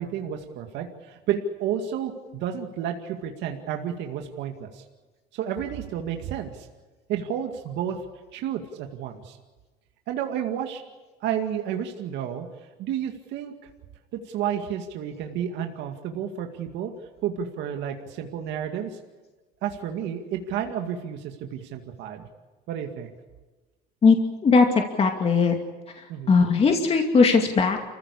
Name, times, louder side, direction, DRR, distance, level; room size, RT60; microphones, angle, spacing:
voice 1, 0.0-4.8 5.3-6.7 7.1-8.0 8.3-9.4 10.1-10.8 11.2-12.5 12.8-13.5 14.1-16.9 17.2-19.0 19.6-22.3 22.7-23.1 26.1-26.4, right 9 dB, 75° right, 4 dB, 2.2 m, -31 dB
voice 2, 24.4-25.6 25.9-27.8, left 4 dB, 30° left, 3 dB, 2.5 m, -19 dB
28.5 x 15.5 x 8.6 m, 1.2 s
cardioid pair, 125°, 19 cm